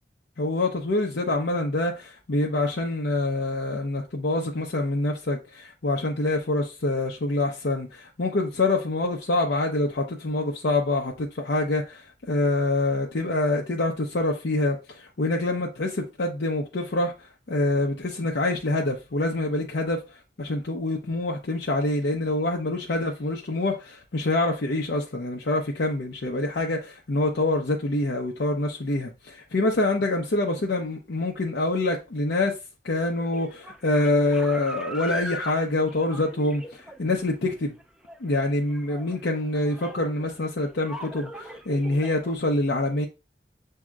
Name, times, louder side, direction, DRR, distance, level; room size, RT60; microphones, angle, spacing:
voice 1, 0.4-20.0 20.4-32.6 32.8-37.8 38.2-43.1, left 2 dB, 70° left, 0.7 m, -26 dB
sound 1, 33.1-42.4, equal, 5° right, 0.4 m, -40 dB
7.2 x 2.8 x 2.3 m
head